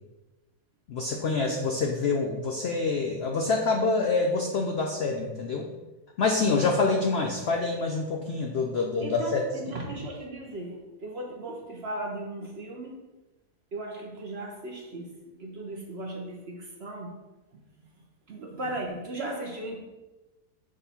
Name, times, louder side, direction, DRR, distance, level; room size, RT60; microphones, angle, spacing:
voice 1, 0.9-5.7 6.2-9.4, left 3 dB, 80° left, 2 dB, 0.5 m, -26 dB
voice 2, 9.0-13.1 13.7-17.2 18.3-19.8, right 1 dB, 50° right, 0 dB, 0.8 m, -37 dB
6.4 x 2.6 x 5.5 m, 1.1 s
omnidirectional pair, 1.8 m